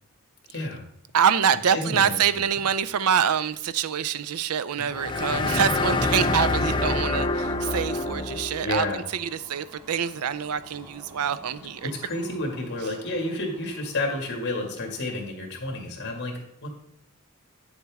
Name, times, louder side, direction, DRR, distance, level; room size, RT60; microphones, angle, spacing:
voice 1, 0.5-0.8 1.7-2.2 4.8-4.9 8.6-9.0 11.8-16.7, left 2 dB, 55° left, 2.1 m, -30 dB
voice 2, 1.1-11.9, right 8 dB, 80° right, 0.5 m, -25 dB
sound 1, 4.9-8.7, left 2 dB, 20° left, 0.5 m, -26 dB
sound 2, 5.5-15.2, equal, 10° right, 3.8 m, -52 dB
9.6 x 7.1 x 3.5 m
head